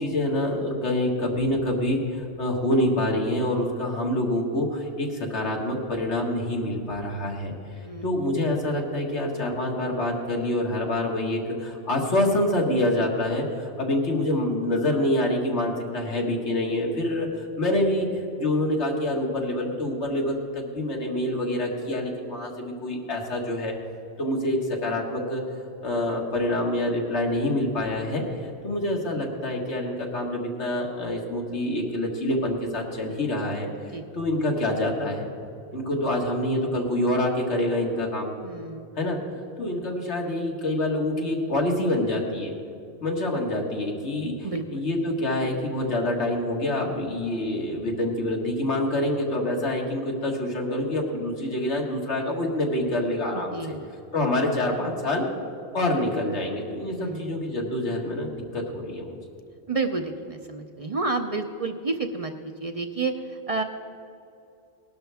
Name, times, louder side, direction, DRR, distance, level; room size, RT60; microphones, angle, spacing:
voice 1, 0.0-7.5 8.0-18.1 18.4-23.7 24.2-25.4 25.8-28.2 28.6-33.7 34.1-35.3 35.7-38.3 39.0-39.2 39.6-42.5 43.0-44.3 44.7-53.6 54.1-55.3 55.7-59.1, left 1 dB, 90° left, 0 dB, 2.1 m, -26 dB
voice 2, 7.8-8.3 33.9-34.0 38.4-39.0 39.4-39.9 44.4-44.8 53.3-53.9 56.9-57.3 59.7-63.6, right 3 dB, 40° right, 5 dB, 0.6 m, -31 dB
19.5 x 12.0 x 3.5 m, 2.7 s
omnidirectional pair, 1.1 m